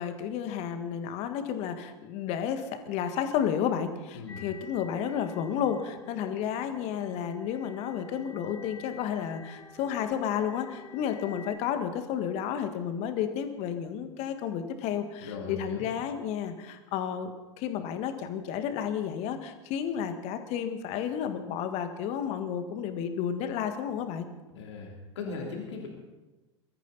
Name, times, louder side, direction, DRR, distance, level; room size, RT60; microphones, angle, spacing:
voice 1, 0.0-17.3 17.6-24.3, left 8 dB, 45° left, 8 dB, 1.8 m, -32 dB
sound 1, 4.3-11.6, left 3 dB, 15° left, 2.2 m, -48 dB
voice 2, 15.2-15.9 24.5-25.9, left 4 dB, 70° left, 0 dB, 3.1 m, -38 dB
23.5 x 13.5 x 4.2 m, 1.1 s
figure-of-eight pair, 90°, 15 cm